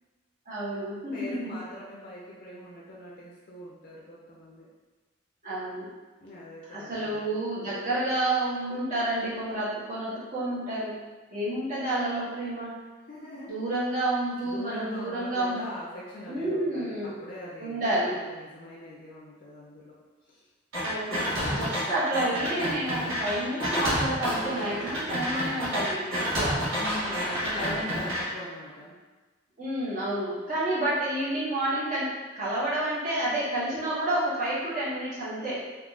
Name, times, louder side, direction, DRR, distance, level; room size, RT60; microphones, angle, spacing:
voice 1, 0.4-1.6 5.4-5.9 6.7-11.0 11.3-12.7 13.5-15.6 16.2-17.2 17.6-18.2 20.8-26.6 29.6-35.6, right 1 dB, 40° right, -11 dB, 1.3 m, -30 dB
voice 2, 1.1-4.7 6.2-7.4 13.1-13.5 14.4-20.0 20.3-20.5 26.7-28.9, left 1 dB, 45° left, -6 dB, 0.5 m, -41 dB
sound 1, 20.7-21.8 22.1-28.2, equal, 85° right, 1.1 m, -29 dB
3.8 x 2.7 x 2.4 m, 1.3 s
head